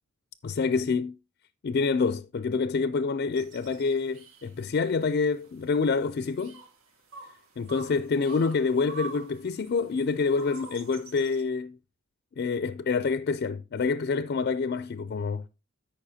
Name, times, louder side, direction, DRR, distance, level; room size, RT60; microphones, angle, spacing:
voice 1, 0.4-1.1 1.6-6.6 7.6-11.8 12.4-15.5, left 4 dB, 50° left, 0.4 m, -27 dB
sound 1, 3.3-11.4, right 3 dB, 90° right, 2.0 m, -47 dB
14.0 x 5.2 x 2.7 m
head